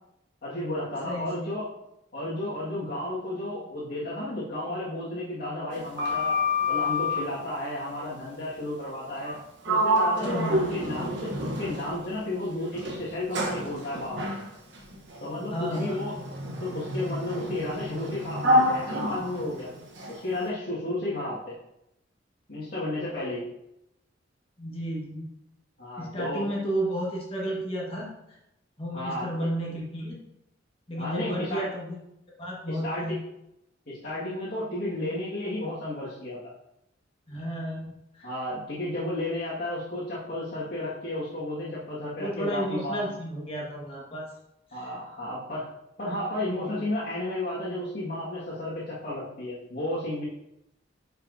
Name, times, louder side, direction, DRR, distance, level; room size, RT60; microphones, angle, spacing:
voice 1, 0.4-1.7 2.1-6.4 6.7-9.3 9.6-14.3 15.2-16.1 16.4-19.7 20.1-21.5 22.5-23.4 25.8-26.5 28.9-29.5 30.9-31.7 32.7-33.2 33.9-36.4 38.2-43.1 44.7-45.7 46.0-50.2, left 1 dB, 55° left, -9 dB, 2.1 m, -32 dB
voice 2, 1.0-1.5 10.2-10.7 15.5-16.1 24.6-25.3 26.0-28.1 28.8-30.2 30.9-32.0 32.4-33.2 37.3-38.3 42.2-44.3 44.7-44.9, right 1 dB, 30° left, -4 dB, 1.7 m, -32 dB
Sliding door, 5.7-7.3 9.2-9.4 9.7-12.1 12.7-20.2, left 1 dB, 70° right, 1.2 m, -28 dB
9.9 x 5.6 x 2.8 m, 0.85 s
head